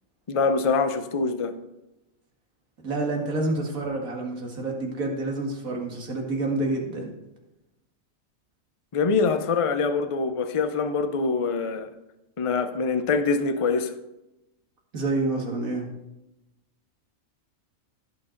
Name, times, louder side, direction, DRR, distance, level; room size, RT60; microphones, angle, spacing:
voice 1, 0.3-1.5 8.9-11.9 12.4-13.9, left 4 dB, 35° left, 0.6 m, -24 dB
voice 2, 2.8-7.1 14.9-15.9, right 2 dB, 90° right, 2.4 m, -28 dB
16.0 x 6.0 x 3.9 m
omnidirectional pair, 1.4 m